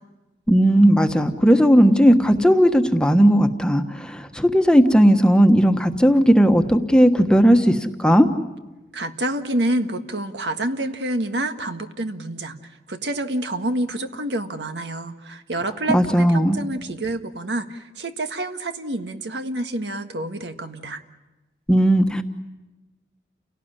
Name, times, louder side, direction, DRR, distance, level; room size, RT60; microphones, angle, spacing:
voice 1, 0.5-3.8 4.1-8.3 15.9-16.6 21.7-22.2, equal, 5° left, 6 dB, 1.2 m, -16 dB
voice 2, 8.9-12.6 12.9-21.0, right 1 dB, 85° right, 7 dB, 1.7 m, -28 dB
29.5 x 18.0 x 9.8 m, 1.1 s
head